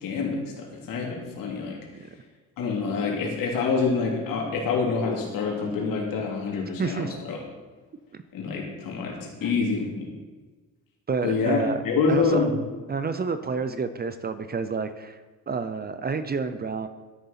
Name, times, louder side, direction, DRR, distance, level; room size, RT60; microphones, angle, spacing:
voice 1, 0.0-1.8 2.6-7.4 8.3-10.1 11.2-11.6 11.8-12.6, left 4 dB, 75° left, 0 dB, 2.9 m, -26 dB
voice 2, 6.8-7.2 8.1-8.2 9.4-9.5 11.1-11.8 12.1-12.5 12.9-15.2 15.5-16.9, right 5 dB, 30° right, 11 dB, 0.7 m, -29 dB
12.5 x 6.6 x 5.8 m, 1.3 s
cardioid pair, 115°, 33 cm